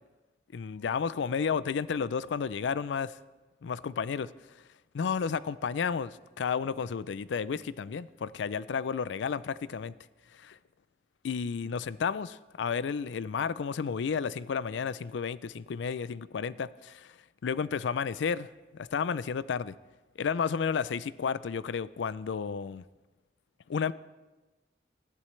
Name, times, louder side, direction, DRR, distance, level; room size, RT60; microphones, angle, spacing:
voice 1, 0.5-3.1 3.6-4.3 4.9-9.9 10.4-10.6 11.2-17.1 17.4-18.5 18.7-19.7 20.2-22.8 23.7-23.9, left 6 dB, 85° left, 18 dB, 0.4 m, -32 dB
18.0 x 12.0 x 3.2 m, 1.2 s
head